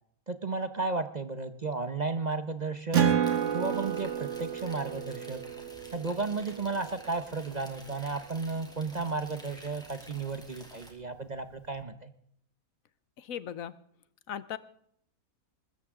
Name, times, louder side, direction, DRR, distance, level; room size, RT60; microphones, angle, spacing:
voice 1, 0.3-3.0 3.5-5.4 5.9-12.1, right 3 dB, 35° right, 10 dB, 0.8 m, -33 dB
Acoustic guitar, 2.9-7.9, right 8 dB, 55° right, 1.8 m, -31 dB
sound 1, 3.2-10.9, equal, 5° left, 2.7 m, -51 dB
voice 2, 13.2-13.8 14.3-14.6, left 9 dB, 70° left, 16 dB, 1.2 m, -37 dB
21.5 x 13.5 x 3.7 m, 0.67 s
omnidirectional pair, 1.5 m